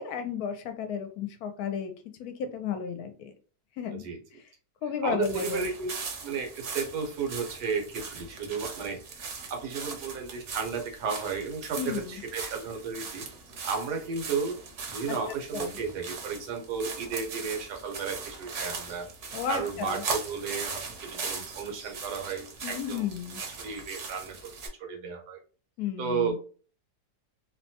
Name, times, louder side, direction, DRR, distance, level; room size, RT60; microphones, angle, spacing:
voice 1, 0.0-1.9 2.2-3.3 3.8-4.1 4.8-5.6 11.8-12.2 15.1-15.2 15.5-15.8 19.3-20.0 22.6-23.5 25.8-26.4, left 7 dB, 75° left, 7 dB, 1.0 m, -33 dB
voice 2, 3.9-4.2 5.0-5.9 6.2-9.0 9.5-13.3 13.6-14.6 14.9-19.1 19.5-23.1 23.6-24.5 24.8-25.4 26.0-26.4, right 5 dB, 85° right, 2 dB, 1.4 m, -33 dB
sound 1, 5.2-24.7, right 4 dB, 60° right, 0.9 m, -39 dB
3.0 x 2.2 x 2.7 m, 0.39 s
omnidirectional pair, 1.7 m